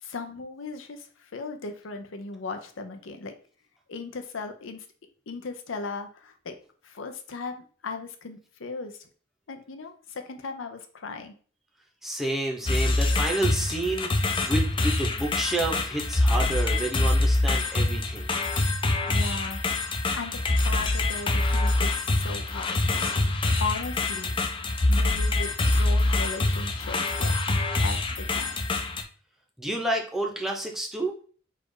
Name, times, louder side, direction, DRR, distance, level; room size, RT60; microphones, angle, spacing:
voice 1, 0.0-3.3 3.9-4.9 5.3-6.5 6.8-9.0 9.5-11.3 19.1-19.6 20.1-23.1 23.6-24.4 24.9-28.6, left 3 dB, 70° left, 6 dB, 0.6 m, -37 dB
voice 2, 12.0-18.3 29.6-31.2, right 2 dB, ahead, 0 dB, 0.8 m, -29 dB
sound 1, 12.7-29.0, left 2 dB, 25° left, 0.5 m, -25 dB
4.2 x 2.4 x 4.7 m, 0.42 s
head